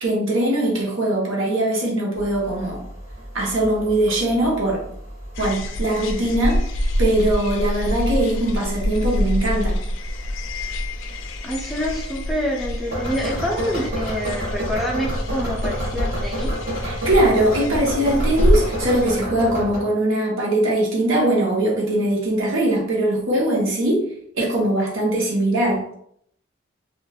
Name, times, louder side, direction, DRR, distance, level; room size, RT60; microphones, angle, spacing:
voice 1, 0.0-2.8 3.3-4.9 5.4-6.7 7.0-9.8 16.8-24.1 24.3-25.9, right 1 dB, 75° right, -3 dB, 0.9 m, -21 dB
sound 1, 2.1-19.8, equal, 45° right, 0.9 m, -32 dB
sound 2, 5.4-19.2, left 1 dB, 70° left, 0.3 m, -26 dB
voice 2, 11.4-16.6, equal, ahead, -4 dB, 0.4 m, -27 dB
2.9 x 2.3 x 2.3 m, 0.68 s
head